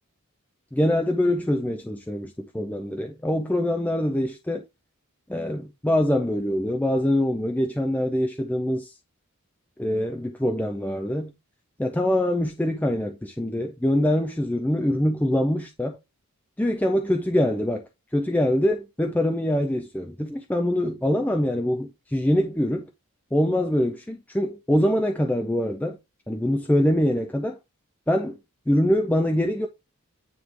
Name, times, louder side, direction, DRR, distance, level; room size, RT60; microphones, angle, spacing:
voice 1, 0.7-4.6 5.3-8.9 9.8-11.3 11.8-16.0 16.6-22.9 23.3-26.0 26.3-27.6 28.1-28.4 28.7-29.7, left 1 dB, 10° left, 0.4 m, -24 dB
9.3 x 3.1 x 3.3 m
head